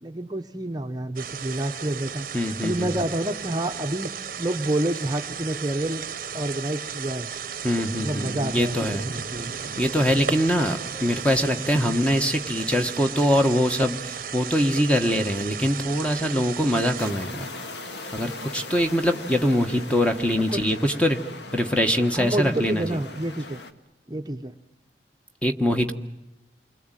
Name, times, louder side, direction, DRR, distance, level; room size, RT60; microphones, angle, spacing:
voice 1, 0.0-4.1 4.4-6.0 6.3-7.3 8.0-8.8 9.0-9.5 20.5-20.7 22.1-23.6 24.1-24.5, right 1 dB, 20° right, 5 dB, 0.9 m, -28 dB
sound 1, 1.2-17.1, right 7 dB, 50° right, 0.9 m, -34 dB
voice 2, 2.3-2.9 7.6-9.0 9.8-17.5 18.1-21.2 21.5-23.0 25.4-25.9, equal, 5° left, 6 dB, 1.3 m, -23 dB
sound 2, 8.0-23.4, right 1 dB, 45° left, 6.0 m, -49 dB
sound 3, 17.0-23.7, left 3 dB, 75° left, 1.8 m, -39 dB
28.5 x 21.5 x 9.1 m, 0.94 s
head